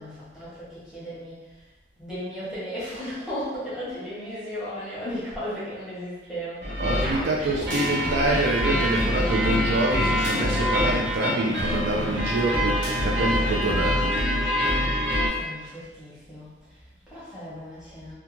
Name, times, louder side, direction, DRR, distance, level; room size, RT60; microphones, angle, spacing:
voice 1, 0.0-1.6 2.0-6.8 7.3-7.7 14.8-18.1, equal, 5° right, -12 dB, 0.9 m, -36 dB
sound 1, 6.6-15.3, equal, 80° right, 0.8 m, -25 dB
voice 2, 6.8-14.1, right 2 dB, 60° right, -2 dB, 0.3 m, -26 dB
sound 2, 8.5-14.2, left 2 dB, 75° left, 0.4 m, -39 dB
2.4 x 2.2 x 3.0 m, 1.1 s
head